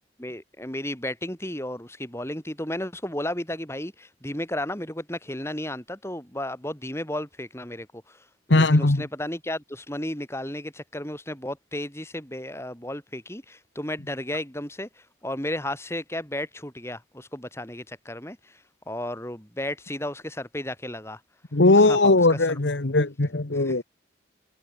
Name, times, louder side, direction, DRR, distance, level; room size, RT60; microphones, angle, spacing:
voice 1, 0.2-8.3 8.5-21.2 21.8-22.4 23.5-23.8, left 1 dB, 15° left, 5.5 m, -34 dB
voice 2, 8.5-9.0 21.5-23.8, left 2 dB, 85° left, 1.4 m, -19 dB
head